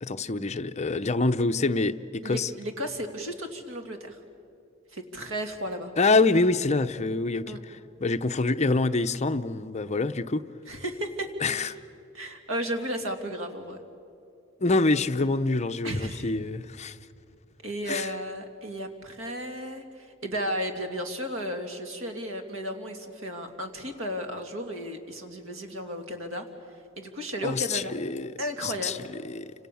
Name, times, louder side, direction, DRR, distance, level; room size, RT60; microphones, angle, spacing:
voice 1, 0.0-2.5 6.0-10.4 11.4-11.8 14.6-17.0 17.9-18.1 27.4-28.3 28.6-29.0 29.2-29.5, left 3 dB, 35° left, 10 dB, 0.7 m, -26 dB
voice 2, 2.2-4.2 4.9-5.9 7.5-7.6 10.7-11.7 12.1-13.8 15.8-16.3 17.6-26.5 27.0-28.0 28.4-29.1, equal, 80° right, 5 dB, 2.9 m, -34 dB
29.5 x 27.0 x 7.1 m, 2.7 s
head